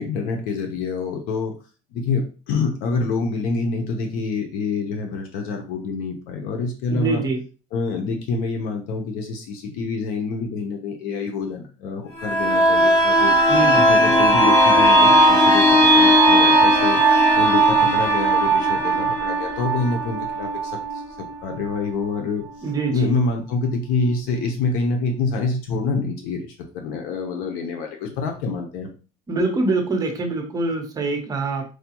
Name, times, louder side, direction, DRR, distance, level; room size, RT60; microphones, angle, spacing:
voice 1, 0.0-1.5 1.9-7.2 7.7-13.3 13.7-15.6 15.9-17.0 17.4-21.0 21.4-22.4 22.9-28.9, left 4 dB, 75° left, 3 dB, 0.8 m, -26 dB
voice 2, 6.9-7.4 13.5-13.9 22.6-23.1 29.3-31.6, right 3 dB, 25° right, 3 dB, 0.9 m, -24 dB
sound 1, 12.2-21.8 22.1-22.2, right 1 dB, 50° left, 2.0 m, -17 dB
4.7 x 2.3 x 2.9 m, 0.35 s
cardioid pair, 140°, 15 cm